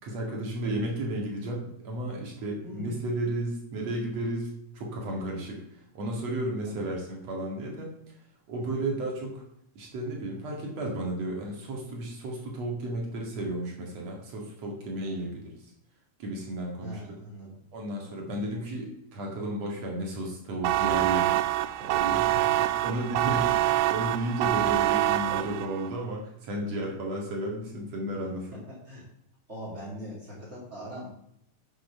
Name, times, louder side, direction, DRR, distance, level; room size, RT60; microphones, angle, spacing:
voice 1, 0.0-7.9 8.5-9.4 9.8-15.7 16.2-17.2 17.7-21.4 21.8-22.3 22.8-28.6, right 1 dB, 65° right, -1 dB, 3.3 m, -33 dB
voice 2, 16.8-17.5 22.3-22.7 26.5-26.9 28.9-29.0 29.5-31.2, equal, 20° right, -6 dB, 4.2 m, -42 dB
sound 1, 20.6-25.9, right 15 dB, 85° right, 1.9 m, -25 dB
9.9 x 6.5 x 5.6 m, 0.75 s
omnidirectional pair, 3.3 m